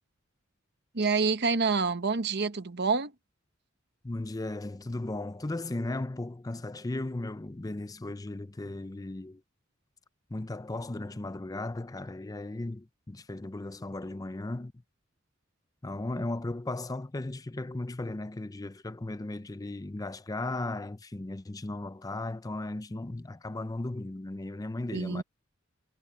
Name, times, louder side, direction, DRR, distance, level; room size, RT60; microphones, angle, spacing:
voice 1, 0.9-3.1 24.9-25.2, right 4 dB, 55° right, 1.0 m, -27 dB
voice 2, 4.0-9.4 10.3-14.7 15.8-25.2, left 2 dB, 20° left, 0.5 m, -36 dB
head